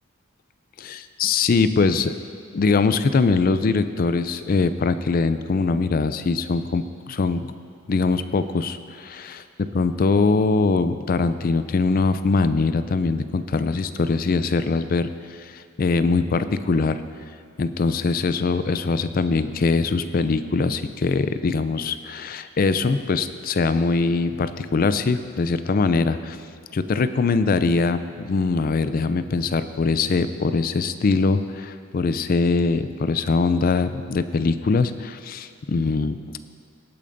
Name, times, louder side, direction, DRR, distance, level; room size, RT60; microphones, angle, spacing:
voice 1, 0.8-2.1 2.5-7.5 7.9-15.1 15.5-17.0 17.6-26.4 26.7-36.2, left 4 dB, 45° left, 11 dB, 0.4 m, -22 dB
18.0 x 8.5 x 2.6 m, 2.1 s
head